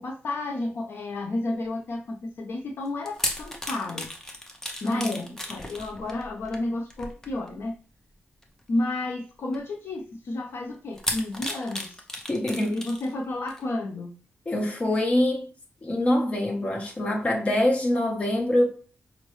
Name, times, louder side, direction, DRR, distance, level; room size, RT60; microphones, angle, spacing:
voice 1, 0.0-4.1 4.8-7.7 8.7-12.0 12.6-14.2, left 2 dB, 65° left, 0.6 m, -31 dB
sound 1, 2.9-7.7 8.4-8.6 9.5-9.6 11.0-13.1 13.5-13.6, left 1 dB, 10° left, 0.7 m, -35 dB
voice 2, 4.8-5.2 12.3-12.8 14.5-15.5 15.8-18.7, left 1 dB, 30° left, 1.0 m, -24 dB
5.3 x 2.1 x 3.1 m
wide cardioid pair, 115°, 4 cm